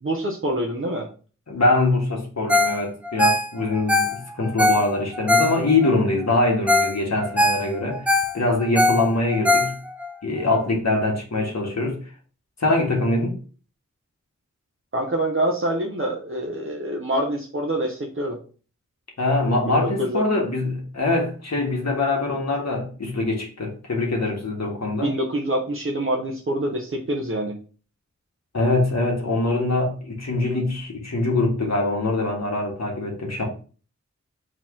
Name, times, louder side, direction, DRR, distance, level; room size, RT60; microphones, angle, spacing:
voice 1, 0.0-1.1 14.9-18.4 19.7-20.2 25.0-27.5, right 1 dB, 45° right, 0.8 m, -26 dB
voice 2, 1.5-9.7 10.2-12.0 12.6-13.3 19.2-25.1 28.5-33.4, left 2 dB, 65° left, 1.4 m, -23 dB
Ringtone, 2.5-2.8 3.0-5.9 6.4-6.5 6.7-6.9 7.2-10.1 10.5-10.6, left 2 dB, 5° right, 0.6 m, -21 dB
4.2 x 3.0 x 3.7 m
wide cardioid pair, 75°, 29 cm